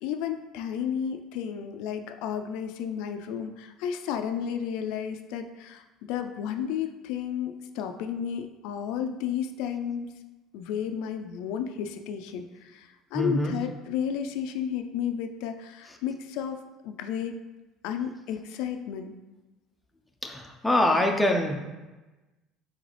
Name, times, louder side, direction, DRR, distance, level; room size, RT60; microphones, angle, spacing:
voice 1, 0.0-10.1 10.5-16.6 16.8-17.3 17.8-19.1, left 8 dB, 75° left, 6 dB, 0.3 m, -32 dB
voice 2, 13.1-13.5 20.2-21.5, left 1 dB, 5° left, 1 dB, 0.4 m, -24 dB
3.8 x 3.5 x 3.2 m, 1.1 s
cardioid pair, 155°, 0 cm